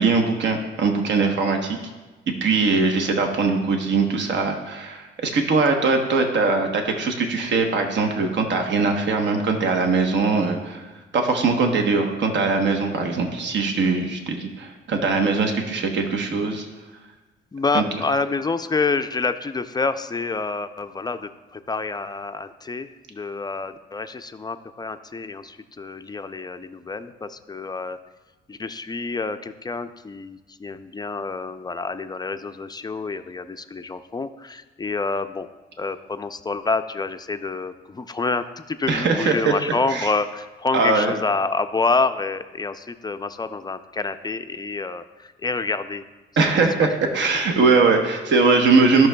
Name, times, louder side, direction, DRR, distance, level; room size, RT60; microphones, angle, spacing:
voice 1, 0.0-1.8 2.3-10.9 11.1-16.7 17.7-17.8 38.9-39.5 39.9-40.1 40.7-41.1 46.4-49.1, right 4 dB, 65° right, 4 dB, 1.0 m, -21 dB
voice 2, 17.5-28.0 28.5-35.5 35.8-46.0, left 3 dB, 20° left, 9 dB, 0.4 m, -27 dB
14.5 x 6.0 x 2.2 m, 1.2 s
cardioid pair, 90°, 20 cm